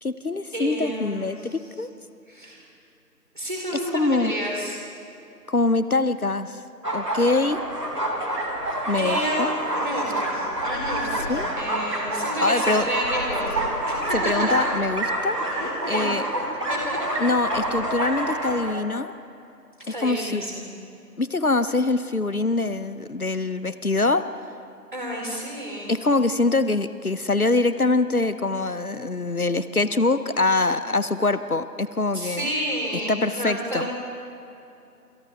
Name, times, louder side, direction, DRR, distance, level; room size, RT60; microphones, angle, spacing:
voice 1, 0.0-1.9 3.9-4.3 5.5-6.6 6.9-7.6 8.9-9.5 11.3-11.5 12.4-12.9 14.1-15.4 15.9-16.2 17.2-19.1 19.9-20.4 21.2-24.2 25.9-32.5 32.9-33.9, left 3 dB, 60° left, 13 dB, 0.9 m, -24 dB
voice 2, 0.5-1.4 2.3-2.6 3.3-4.8 9.0-9.5 9.8-14.7 15.5-17.0 19.9-20.7 24.9-25.9 32.1-33.9, equal, 30° right, -2 dB, 3.9 m, -30 dB
sound 1, 6.8-18.7, right 1 dB, 85° right, 4.1 m, -27 dB
27.5 x 27.5 x 3.5 m, 2.7 s
figure-of-eight pair, 170°, 48 cm